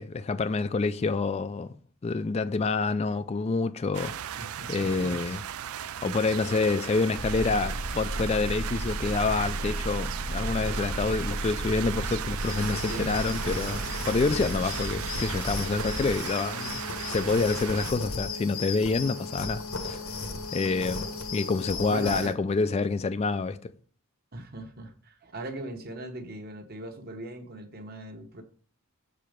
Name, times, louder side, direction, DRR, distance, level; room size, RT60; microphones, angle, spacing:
voice 1, 0.0-1.7 2.0-4.4 4.7-5.4 6.0-20.0 20.5-23.7, left 3 dB, 30° left, 0.3 m, -27 dB
sound 1, 3.9-17.9, right 9 dB, 85° right, 0.4 m, -37 dB
voice 2, 4.4-5.2 6.0-6.2 12.9-13.1 21.9-22.3 24.3-28.4, right 2 dB, 45° right, 1.1 m, -39 dB
sound 2, 7.2-16.2, right 1 dB, 65° right, 1.1 m, -34 dB
sound 3, 12.4-22.3, left 3 dB, 90° left, 1.6 m, -36 dB
7.1 x 4.7 x 5.1 m
head